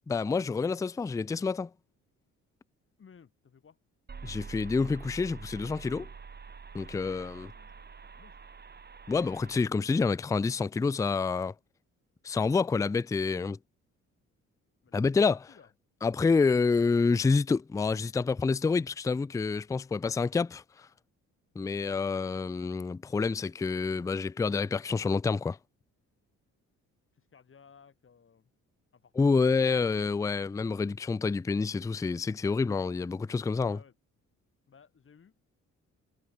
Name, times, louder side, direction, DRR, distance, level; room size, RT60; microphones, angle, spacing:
voice 1, 0.1-1.7 4.2-6.1 6.7-7.5 9.1-11.5 12.2-13.6 14.9-15.4 16.0-20.6 21.6-25.6 29.2-33.8, left 4 dB, 10° left, 0.4 m, -28 dB
voice 2, 3.0-3.8 7.0-8.5 14.8-15.1 15.5-15.7 21.6-21.8 27.1-28.5 28.9-29.3 33.6-33.9 34.7-35.4, left 6 dB, 45° left, 7.3 m, -58 dB
sound 1, 4.1-9.6, right 5 dB, 35° right, 2.8 m, -46 dB
cardioid pair, 90°, 30 cm